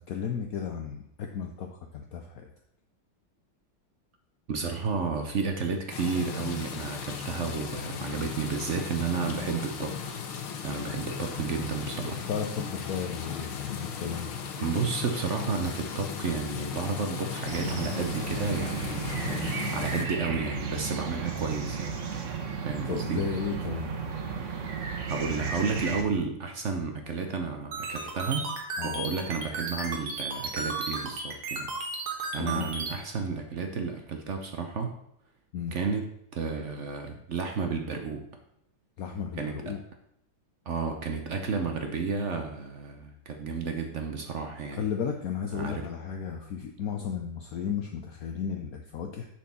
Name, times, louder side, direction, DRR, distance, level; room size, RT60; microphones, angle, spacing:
voice 1, 0.0-2.5 12.3-14.3 22.9-23.9 28.8-29.0 32.4-32.7 35.5-35.7 39.0-39.8 44.7-49.3, left 7 dB, 70° left, 3 dB, 0.9 m, -34 dB
voice 2, 4.5-10.2 10.6-12.2 14.6-22.0 22.6-23.2 25.1-28.5 28.8-31.7 32.3-34.9 35.7-38.2 39.4-39.7 40.7-44.8 45.5-45.9, right 5 dB, 65° right, 4 dB, 0.7 m, -32 dB
sound 1, 5.9-20.0, left 7 dB, 85° left, 1.8 m, -36 dB
sound 2, 17.5-26.0, right 5 dB, 45° right, 1.1 m, -34 dB
sound 3, 27.7-32.9, right 3 dB, 80° right, 2.4 m, -34 dB
7.5 x 4.4 x 6.9 m, 0.75 s
omnidirectional pair, 2.3 m